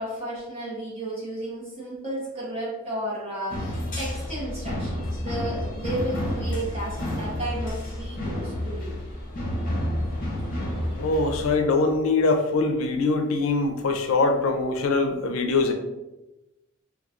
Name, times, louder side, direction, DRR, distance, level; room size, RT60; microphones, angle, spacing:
voice 1, 0.0-9.0, right 1 dB, 30° right, -6 dB, 1.0 m, -33 dB
sound 1, 3.5-11.6, left 1 dB, 40° left, 0.7 m, -30 dB
voice 2, 11.0-15.7, left 3 dB, 85° left, 5 dB, 0.4 m, -23 dB
2.9 x 2.3 x 2.4 m, 1.0 s
head